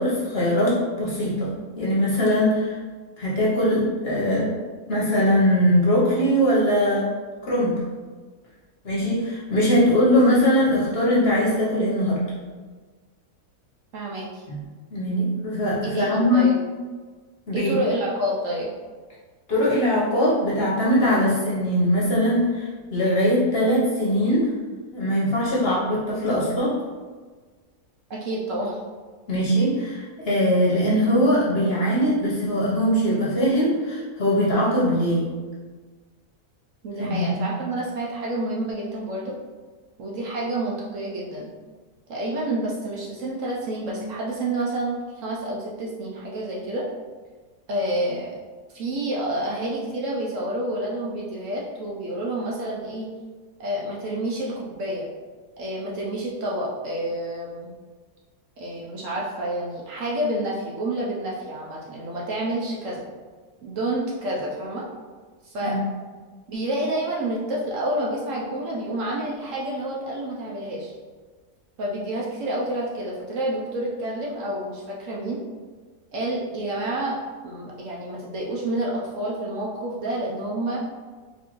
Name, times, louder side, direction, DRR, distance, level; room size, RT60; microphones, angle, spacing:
voice 1, 0.0-2.8 3.2-4.6 4.9-7.1 7.5-7.8 8.8-12.2 14.5-14.6 14.9-16.5 17.5-17.7 19.5-24.5 24.9-26.8 29.3-35.3 37.0-37.3 65.6-65.8, equal, 45° left, -6 dB, 0.9 m, -21 dB
voice 2, 13.9-14.5 15.8-16.5 17.5-18.7 28.1-28.8 36.8-39.3 40.0-41.5 42.1-46.8 47.7-48.3 48.7-53.1 53.6-55.1 55.6-57.7 58.6-63.0 63.6-64.9 65.4-65.8 66.5-70.9 71.8-75.4 76.1-77.2 77.4-80.8, right 1 dB, 65° right, -4 dB, 0.9 m, -29 dB
4.3 x 2.6 x 3.0 m, 1.4 s
omnidirectional pair, 1.6 m